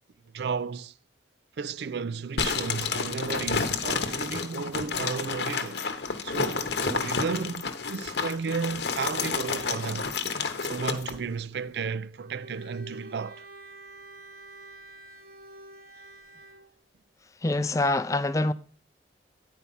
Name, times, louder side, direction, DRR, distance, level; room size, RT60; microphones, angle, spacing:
voice 1, 0.3-0.9 1.6-5.8 6.2-10.1 10.6-13.5, right 5 dB, 65° right, 0.4 m, -33 dB
sound 1, 2.4-11.2, left 5 dB, 70° left, 0.9 m, -30 dB
Bowed string instrument, 12.2-16.7, right 2 dB, 50° right, 0.9 m, -47 dB
voice 2, 17.4-18.5, left 2 dB, 15° left, 0.4 m, -25 dB
10.0 x 4.6 x 5.5 m
head